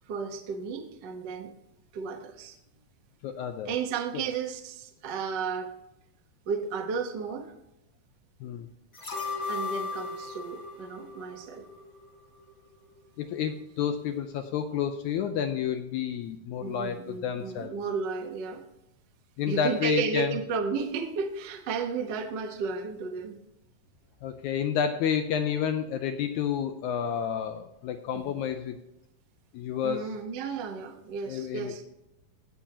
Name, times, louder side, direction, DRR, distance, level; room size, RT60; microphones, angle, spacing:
voice 1, 0.1-1.5 1.9-2.5 3.6-5.7 6.5-7.5 9.5-11.6 16.6-18.6 19.5-23.4 28.1-28.3 29.8-31.8, right 5 dB, 75° right, 3 dB, 1.0 m, -33 dB
voice 2, 3.2-3.7 4.1-4.2 8.4-8.7 13.2-17.8 19.4-20.4 24.2-28.8 29.5-30.0 31.3-31.8, left 8 dB, 80° left, 7 dB, 1.8 m, -30 dB
sound 1, 8.9-12.1 12.4-12.5, left 4 dB, 35° left, 3.8 m, -36 dB
17.5 x 7.0 x 2.9 m, 0.87 s
omnidirectional pair, 3.8 m